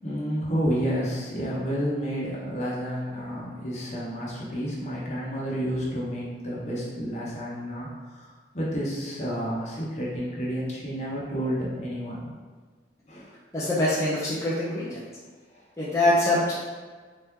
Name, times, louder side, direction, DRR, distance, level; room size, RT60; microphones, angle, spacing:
voice 1, 0.0-8.3 8.5-12.3 13.1-13.3, equal, 40° left, -6 dB, 1.2 m, -30 dB
voice 2, 13.5-15.0 15.8-16.5, left 1 dB, 15° left, -9 dB, 0.7 m, -24 dB
4.2 x 3.0 x 3.6 m, 1.5 s
head